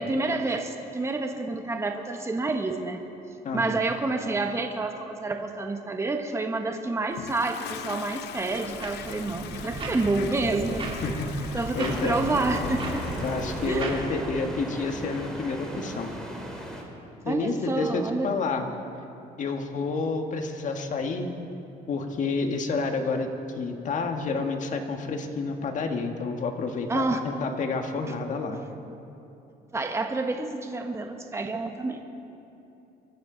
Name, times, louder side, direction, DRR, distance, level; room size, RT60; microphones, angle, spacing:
voice 1, 0.0-3.1 3.5-10.8 11.5-13.0 13.7-13.9 17.3-18.3 26.9-27.2 28.5-28.7 29.7-32.0, right 3 dB, 15° right, 4 dB, 1.1 m, -28 dB
voice 2, 3.4-3.8 11.0-12.3 13.2-16.1 17.2-18.7 19.4-21.3 21.9-28.6, left 4 dB, 50° left, 4 dB, 1.6 m, -29 dB
Toilet flush, 7.1-13.9, left 13 dB, 80° left, 0.6 m, -41 dB
sound 1, 8.3-14.1, right 2 dB, 30° right, 2.9 m, -36 dB
sound 2, 11.8-16.8, equal, 5° left, 2.9 m, -36 dB
24.5 x 13.5 x 3.9 m, 2.8 s
cardioid pair, 110°, 17 cm